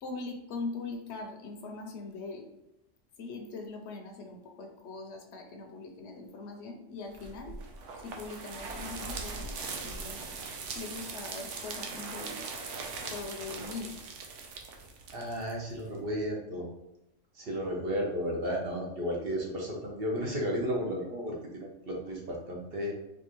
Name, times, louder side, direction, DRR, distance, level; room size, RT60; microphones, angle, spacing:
voice 1, 0.0-2.5 3.2-7.6 8.0-10.2 10.7-14.0, left 3 dB, 70° left, 3 dB, 0.8 m, -41 dB
sound 1, 7.1-16.0, right 4 dB, 80° right, 1.0 m, -40 dB
voice 2, 15.1-16.7 17.3-22.9, equal, 55° right, -1 dB, 1.0 m, -33 dB
4.3 x 2.5 x 3.0 m, 0.87 s
omnidirectional pair, 1.3 m